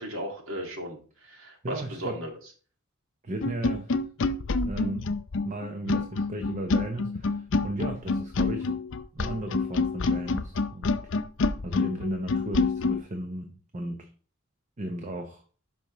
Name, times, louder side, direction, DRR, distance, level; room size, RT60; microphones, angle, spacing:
voice 1, 0.0-2.3, equal, 70° right, 2 dB, 2.1 m, -36 dB
voice 2, 1.6-2.2 3.2-3.9 4.6-5.1 5.4-8.8 9.1-11.0 11.6-14.1 14.8-15.4, right 1 dB, 35° right, 5 dB, 0.9 m, -35 dB
sound 1, 3.4-13.0, left 3 dB, 60° left, 0.6 m, -27 dB
12.0 x 5.3 x 3.1 m, 0.40 s
head